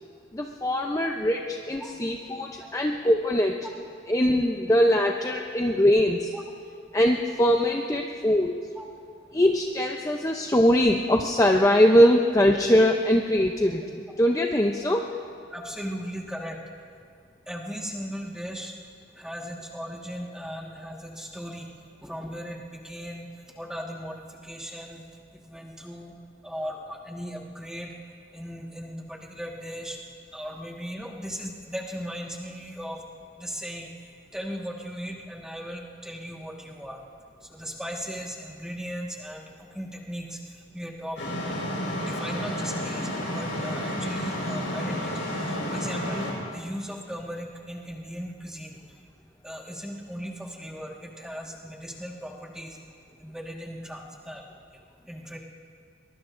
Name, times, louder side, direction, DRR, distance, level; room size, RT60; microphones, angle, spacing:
voice 1, 0.3-3.7 4.1-6.3 6.9-8.6 9.3-15.0, equal, 15° left, 2 dB, 0.6 m, -22 dB
voice 2, 15.5-16.6 17.5-18.7 19.2-21.7 22.0-23.3 23.5-25.0 25.4-26.1 26.4-27.9 28.3-30.0 30.3-33.0 33.4-33.9 34.3-37.0 37.5-40.4 40.7-41.2 42.0-46.3 46.5-48.8 49.4-52.8 53.2-54.4 55.1-55.4, equal, 5° right, -1 dB, 1.5 m, -37 dB
sound 1, 41.2-46.3, equal, 90° left, 4.8 m, -31 dB
23.0 x 22.5 x 2.6 m, 2.2 s
head